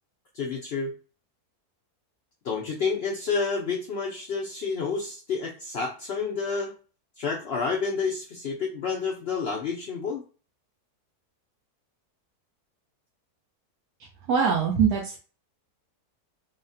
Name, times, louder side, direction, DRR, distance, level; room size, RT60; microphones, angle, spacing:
voice 1, 0.3-0.9 2.4-6.7 7.2-10.2, left 5 dB, 90° left, 0 dB, 0.5 m, -29 dB
voice 2, 14.3-15.2, right 6 dB, 90° right, -1 dB, 1.3 m, -22 dB
4.0 x 2.1 x 2.6 m, 0.36 s
omnidirectional pair, 1.7 m